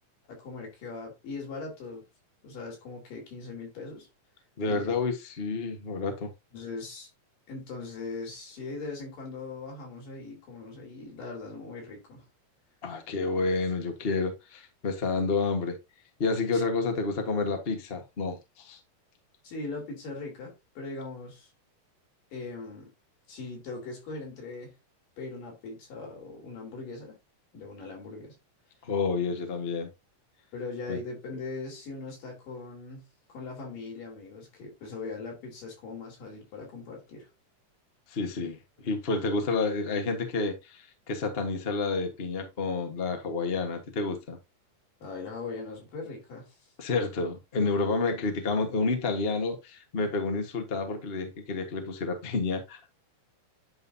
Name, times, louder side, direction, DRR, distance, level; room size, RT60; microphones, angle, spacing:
voice 1, 0.3-2.1 2.4-4.1 4.7-5.0 6.5-7.1 7.5-12.2 16.5-16.6 19.4-21.5 22.3-22.9 23.3-24.7 25.2-27.2 27.5-28.4 30.5-37.3 45.0-46.6, left 3 dB, 80° left, 5.1 m, -40 dB
voice 2, 4.6-6.3 12.8-15.8 16.2-18.8 28.8-29.9 30.9-31.0 38.1-44.4 46.8-52.9, left 3 dB, 55° left, 0.6 m, -29 dB
10.5 x 5.4 x 2.8 m
omnidirectional pair, 3.8 m